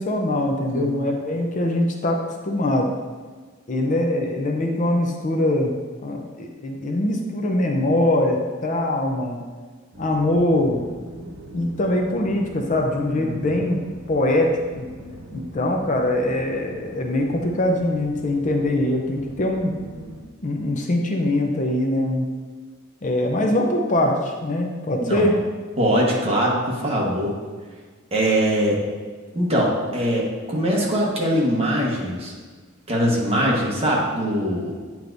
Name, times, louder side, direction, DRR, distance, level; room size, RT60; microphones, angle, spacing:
voice 1, 0.0-2.9 3.7-5.7 6.0-9.4 10.0-10.8 11.5-13.8 14.1-14.9 15.3-19.7 20.4-22.4 23.0-25.4, left 1 dB, 40° left, 2 dB, 0.5 m, -22 dB
sound 1, 9.9-20.2, right 1 dB, 85° right, 0.9 m, -41 dB
voice 2, 13.2-13.5 25.1-25.3 25.8-27.3 28.1-28.8 29.3-32.3 32.9-34.7, equal, 30° right, -4 dB, 1.2 m, -22 dB
8.5 x 4.6 x 2.6 m, 1.5 s
head